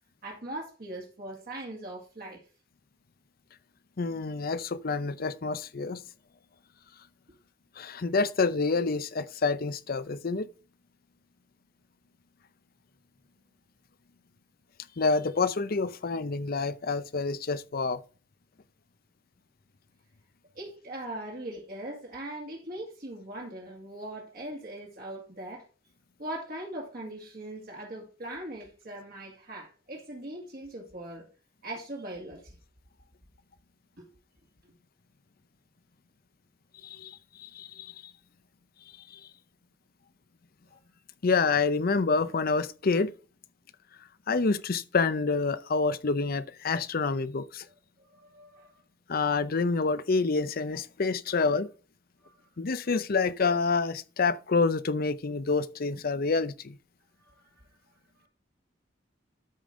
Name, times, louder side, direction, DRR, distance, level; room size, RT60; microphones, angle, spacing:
voice 1, 0.2-2.4 20.6-25.6 26.2-31.2 31.6-32.6 48.0-48.8 52.2-52.4 57.2-57.4 58.2-58.3, right 1 dB, 50° right, 2.3 m, -40 dB
voice 2, 4.0-6.0 7.8-10.5 15.0-18.0 36.8-37.9 39.1-39.2 41.2-43.1 44.3-47.7 49.1-51.7 52.6-56.8, left 4 dB, 50° left, 0.6 m, -27 dB
13.0 x 5.2 x 3.7 m
head